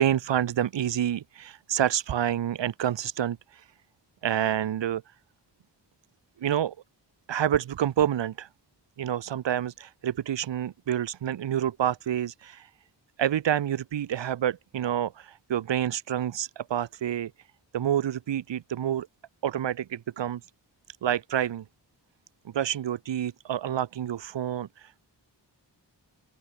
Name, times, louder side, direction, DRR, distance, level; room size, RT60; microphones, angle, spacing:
voice 1, 0.0-3.7 4.2-5.1 6.4-6.7 7.3-8.5 9.0-12.7 13.2-17.5 17.7-19.1 19.4-20.4 20.9-21.6 22.5-25.1, right 10 dB, 90° right, 0.7 m, -28 dB
open air
wide cardioid pair, 60°, 42 cm